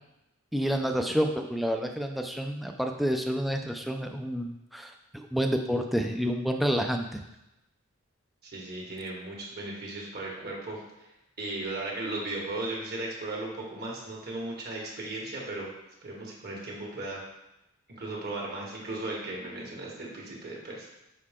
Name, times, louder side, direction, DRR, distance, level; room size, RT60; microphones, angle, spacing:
voice 1, 0.5-7.2, equal, ahead, 4 dB, 0.4 m, -29 dB
voice 2, 8.4-11.1 11.4-15.7 16.0-17.2 17.9-20.9, right 2 dB, 50° right, -2 dB, 1.6 m, -36 dB
6.6 x 4.6 x 3.7 m, 0.89 s
head